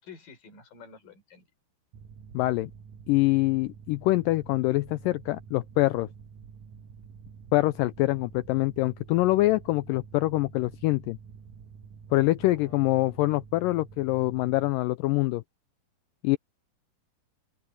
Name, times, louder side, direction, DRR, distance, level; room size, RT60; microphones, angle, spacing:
voice 1, 0.0-1.5 12.5-12.8, left 5 dB, 60° left, 6.4 m, -49 dB
Mechanical fan, 1.9-14.7, right 6 dB, 65° right, 1.9 m, -48 dB
voice 2, 2.3-2.7 3.1-6.1 7.5-11.2 12.1-15.4 16.2-16.4, left 18 dB, 90° left, 1.9 m, -25 dB
open air
omnidirectional pair, 4.4 m